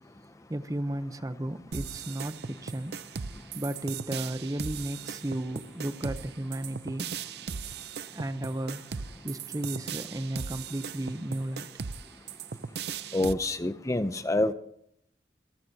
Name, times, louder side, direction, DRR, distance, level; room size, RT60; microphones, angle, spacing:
voice 1, 0.5-2.9 3.5-7.1 8.1-8.8 9.2-11.7, right 1 dB, 20° right, 11 dB, 0.7 m, -34 dB
sound 1, 1.7-13.3, right 6 dB, 65° right, 0.6 m, -38 dB
voice 2, 13.1-14.5, left 2 dB, 15° left, 11 dB, 0.5 m, -27 dB
25.5 x 15.5 x 2.8 m, 0.67 s
head